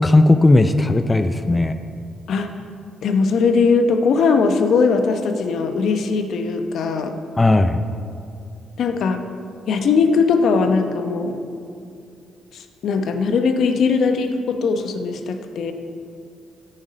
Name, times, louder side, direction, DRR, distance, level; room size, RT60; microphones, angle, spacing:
voice 1, 0.0-1.7 7.4-7.8, left 2 dB, 20° left, 9 dB, 0.4 m, -16 dB
voice 2, 3.0-7.2 8.8-9.2 9.7-11.4 12.8-15.7, left 4 dB, 70° left, 7 dB, 0.9 m, -19 dB
9.9 x 8.9 x 5.2 m, 2.4 s
cardioid pair, 90°, 0 cm